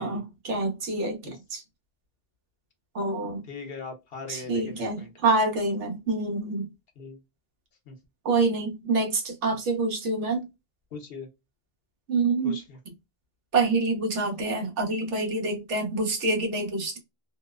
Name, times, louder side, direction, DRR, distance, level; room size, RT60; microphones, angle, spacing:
voice 1, 0.0-1.6 2.9-3.4 4.3-6.7 8.2-10.5 12.1-12.6 13.5-17.0, right 3 dB, 80° right, 1.2 m, -26 dB
voice 2, 3.5-5.1 7.0-7.2 7.9-8.0 10.9-11.3 12.4-12.8, left 4 dB, 60° left, 0.9 m, -40 dB
2.8 x 2.0 x 2.3 m
omnidirectional pair, 1.2 m